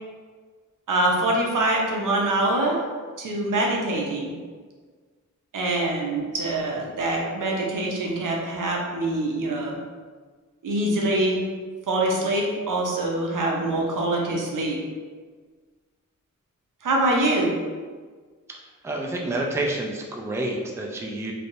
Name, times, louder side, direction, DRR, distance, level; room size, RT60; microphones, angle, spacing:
voice 1, 0.9-2.9 3.2-4.4 5.5-9.8 10.6-11.4 11.9-14.8 16.8-17.5, right 2 dB, 85° right, -2 dB, 0.7 m, -24 dB
voice 2, 18.8-21.3, right 2 dB, 10° right, 0 dB, 0.3 m, -28 dB
3.4 x 2.7 x 2.5 m, 1.5 s
wide cardioid pair, 120°, 31 cm